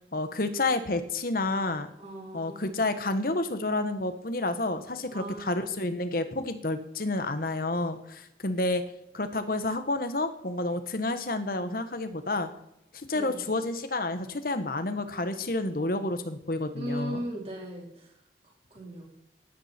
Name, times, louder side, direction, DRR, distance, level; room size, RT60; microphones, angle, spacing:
voice 1, 0.1-1.9 2.3-8.8 9.1-12.5 12.9-17.2, left 2 dB, 55° left, 10 dB, 1.3 m, -30 dB
voice 2, 2.0-2.8 5.1-5.5 13.1-13.5 16.7-18.1 18.7-19.1, equal, 35° right, -2 dB, 4.1 m, -37 dB
16.5 x 11.5 x 4.4 m, 0.83 s
head